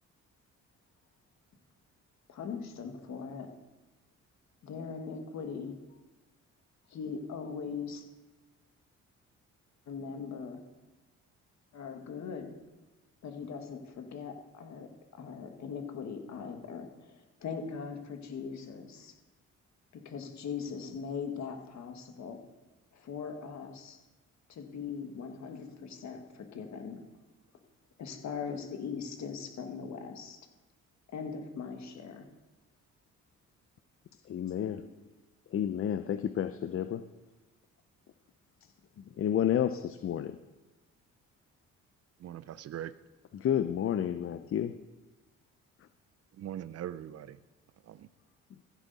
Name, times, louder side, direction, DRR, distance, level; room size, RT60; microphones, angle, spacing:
voice 1, 2.3-3.5 4.6-5.8 6.9-8.0 9.9-10.6 11.7-12.5 13.2-19.1 19.9-22.4 22.9-24.0 24.5-27.0 28.0-30.4 31.1-32.3 34.7-35.1, left 6 dB, 65° left, 1.7 m, -40 dB
voice 2, 34.3-34.8 35.5-37.0 39.0-40.4 43.3-44.7, left 10 dB, 45° left, 0.5 m, -30 dB
voice 3, 42.2-42.9 46.3-47.4 47.8-48.1, right 11 dB, 55° right, 0.5 m, -41 dB
15.0 x 8.2 x 4.1 m
cardioid pair, 90°, 30 cm